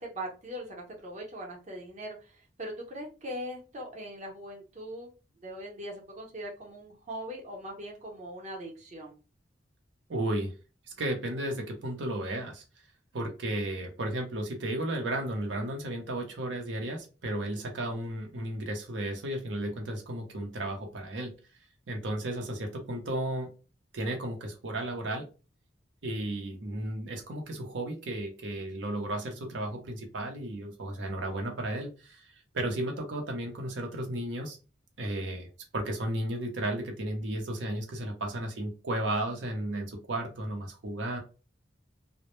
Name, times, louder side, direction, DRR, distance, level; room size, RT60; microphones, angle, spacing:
voice 1, 0.0-5.1 5.4-9.2, equal, 40° right, 0 dB, 0.7 m, -41 dB
voice 2, 10.1-10.5 11.0-12.6 13.1-21.3 21.9-23.5 23.9-25.3 26.0-34.6 35.0-41.2, right 1 dB, 85° right, 2 dB, 0.6 m, -34 dB
2.1 x 2.0 x 2.9 m, 0.32 s
head